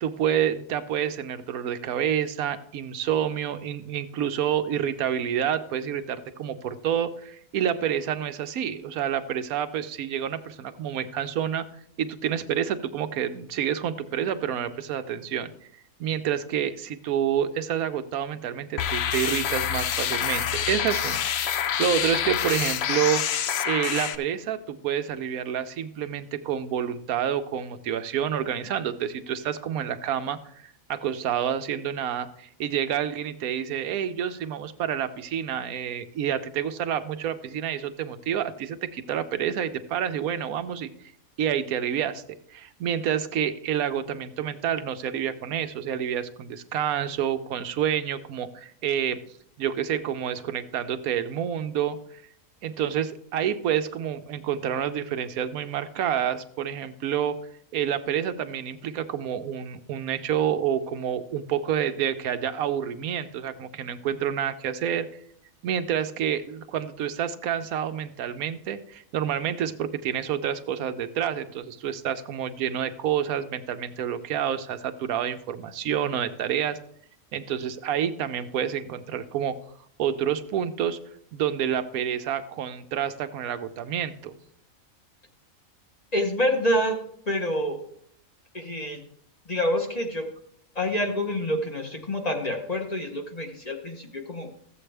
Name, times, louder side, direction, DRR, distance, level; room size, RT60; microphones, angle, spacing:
voice 1, 0.0-11.6 12.0-15.5 16.0-23.2 23.6-40.9 41.4-42.2 42.5-49.2 49.6-52.0 52.6-57.3 57.7-65.1 65.6-76.8 77.3-79.6 80.0-81.0 81.3-84.4, right 9 dB, 85° right, 10 dB, 1.2 m, -28 dB
sound 1, 18.8-24.2, left 9 dB, 60° left, 0.7 m, -27 dB
voice 2, 86.1-87.8 88.5-89.0 89.5-90.3 90.7-94.5, equal, 30° left, 3 dB, 0.9 m, -27 dB
14.5 x 7.7 x 3.3 m, 0.69 s
omnidirectional pair, 1.5 m